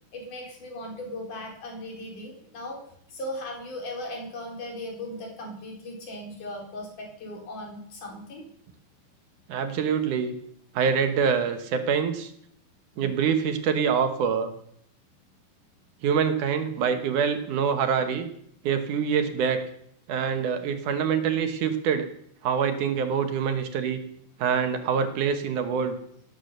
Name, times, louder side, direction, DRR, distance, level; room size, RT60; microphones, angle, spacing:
voice 1, 0.1-2.8 3.1-8.4 12.9-13.2, left 1 dB, 75° left, 0 dB, 5.5 m, -38 dB
voice 2, 9.5-10.3 10.7-12.3 13.0-14.5 16.0-18.3 18.6-19.6 20.1-22.1 22.4-24.0 24.4-26.0, right 7 dB, 75° right, 8 dB, 2.8 m, -25 dB
18.0 x 9.8 x 6.7 m, 0.68 s
omnidirectional pair, 3.6 m